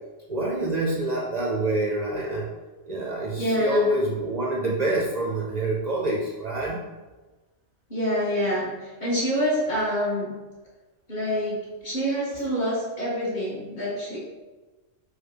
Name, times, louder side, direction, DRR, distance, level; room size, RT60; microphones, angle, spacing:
voice 1, 0.3-2.5 2.9-6.8, right 1 dB, 45° right, -3 dB, 0.5 m, -26 dB
voice 2, 3.4-3.9 7.9-10.3 11.1-14.2, equal, 35° left, -7 dB, 1.6 m, -26 dB
4.9 x 2.3 x 4.5 m, 1.2 s
omnidirectional pair, 1.3 m